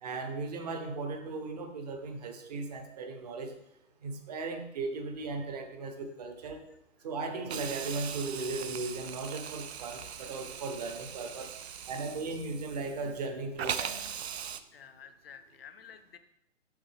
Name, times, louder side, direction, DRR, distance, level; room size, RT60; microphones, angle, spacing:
voice 1, 0.0-3.5 4.0-6.6 7.0-11.5 11.9-14.2, right 3 dB, 35° right, 6 dB, 0.8 m, -37 dB
Hiss, 7.5-13.2 13.6-14.6, right 8 dB, 60° right, 0.5 m, -40 dB
voice 2, 14.7-16.2, left 7 dB, 50° left, 9 dB, 0.7 m, -51 dB
6.6 x 5.3 x 3.4 m, 0.79 s
figure-of-eight pair, 125°, 38 cm